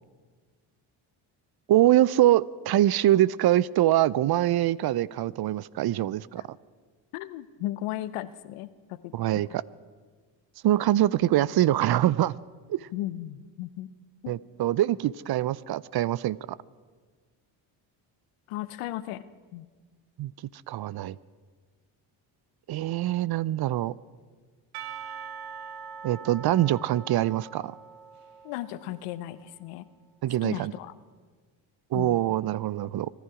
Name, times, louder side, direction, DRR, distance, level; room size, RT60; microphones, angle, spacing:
voice 1, 1.7-6.4 9.1-9.6 10.6-12.3 12.7-12.9 14.3-16.6 20.2-20.3 20.7-21.2 22.7-24.0 26.0-27.7 30.2-30.7 31.9-33.1, right 13 dB, 50° right, 21 dB, 0.5 m, -24 dB
voice 2, 7.1-9.1 9.5-9.6 12.9-13.9 14.2-14.3 18.5-19.2 19.5-19.7 28.4-29.9 30.4-30.9 31.9-32.2, left 15 dB, 85° left, 15 dB, 0.8 m, -35 dB
Percussion / Church bell, 24.7-29.5, right 6 dB, 85° right, 0.9 m, -43 dB
25.0 x 11.5 x 4.9 m, 1.5 s
supercardioid pair, 60°, 50 cm